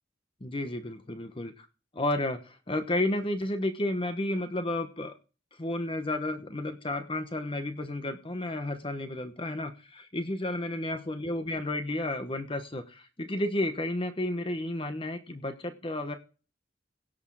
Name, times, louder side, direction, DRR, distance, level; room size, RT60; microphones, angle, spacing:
voice 1, 0.4-1.7 1.9-5.1 5.6-16.1, left 1 dB, 30° left, 7 dB, 1.1 m, -32 dB
17.0 x 6.6 x 4.8 m, 0.34 s
head